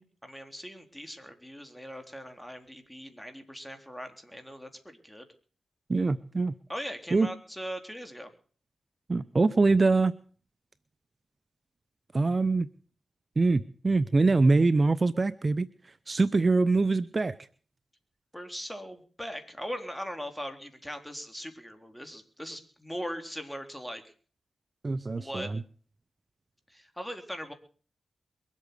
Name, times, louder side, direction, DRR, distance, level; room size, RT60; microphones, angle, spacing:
voice 1, 0.0-5.3 6.7-8.3 18.3-24.1 25.2-25.5 26.7-27.5, equal, 5° left, 6 dB, 3.5 m, -40 dB
voice 2, 5.9-6.5 7.1-7.3 9.1-10.1 12.1-12.7 13.4-15.7 16.1-17.4 24.8-25.6, right 3 dB, 40° right, 16 dB, 0.7 m, -24 dB
22.5 x 8.4 x 6.8 m, 0.43 s
supercardioid pair, 45°, 0 cm